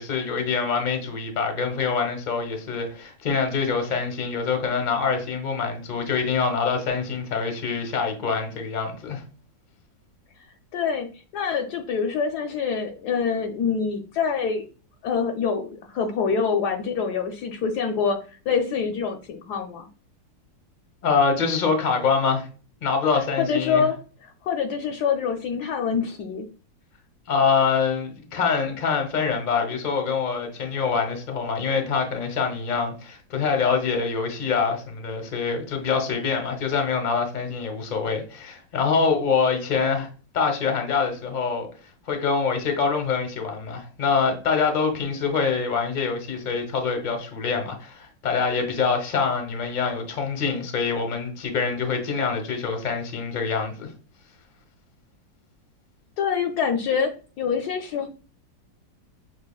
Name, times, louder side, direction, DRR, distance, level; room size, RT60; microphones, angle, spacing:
voice 1, 0.0-9.2 21.0-22.5 22.8-23.9 27.3-40.1 40.3-41.7 42.1-53.9, left 5 dB, 40° left, 0.7 m, -25 dB
voice 2, 10.7-11.1 11.3-14.6 15.0-18.2 18.5-19.9 23.4-24.0 24.2-26.5 56.2-57.1 57.4-58.1, left 6 dB, 75° left, 1.0 m, -25 dB
6.1 x 3.1 x 2.3 m
omnidirectional pair, 2.0 m